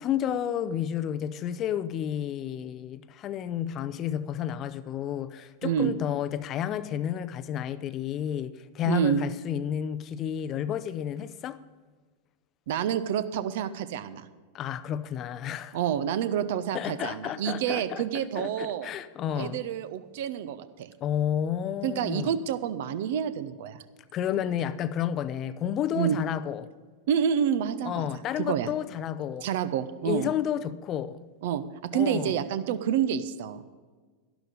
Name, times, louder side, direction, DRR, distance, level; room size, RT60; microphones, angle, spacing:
voice 1, 0.0-11.6 14.5-15.8 16.7-18.0 18.4-19.6 21.0-22.3 24.1-26.7 27.8-29.5 30.0-31.2 31.9-32.4, left 10 dB, 30° left, 0.6 m, -31 dB
voice 2, 8.8-9.2 12.7-14.3 15.7-18.9 19.4-20.9 21.8-23.8 25.9-26.2 27.1-28.1 28.4-28.7 29.4-30.3 31.4-33.6, right 9 dB, 55° right, 0.8 m, -28 dB
12.0 x 11.5 x 5.3 m
figure-of-eight pair, 90°, 0 cm